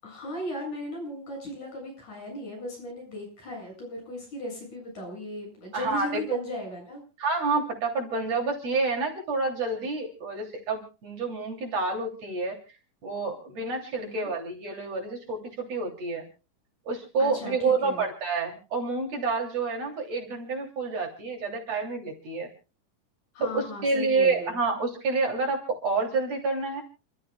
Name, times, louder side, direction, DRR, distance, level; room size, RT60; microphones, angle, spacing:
voice 1, 0.0-7.0 14.0-14.3 17.2-18.0 23.3-24.6, left 1 dB, 65° left, 0 dB, 9.2 m, -37 dB
voice 2, 5.7-6.4 7.2-12.6 13.0-16.3 16.9-22.5 23.4-26.8, right 3 dB, 50° right, 2 dB, 4.3 m, -28 dB
28.5 x 13.5 x 2.4 m, 0.33 s
omnidirectional pair, 3.8 m